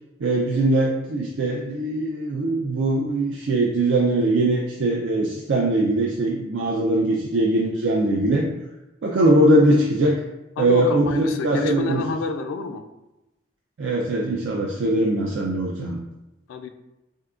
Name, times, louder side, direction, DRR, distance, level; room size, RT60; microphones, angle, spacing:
voice 1, 0.2-8.5 9.0-10.2 10.6-12.0 13.8-16.0, right 1 dB, 70° right, -2 dB, 0.4 m, -21 dB
voice 2, 10.6-12.8 16.5-16.7, left 4 dB, 85° left, 7 dB, 0.3 m, -29 dB
3.5 x 2.7 x 2.3 m, 0.96 s
head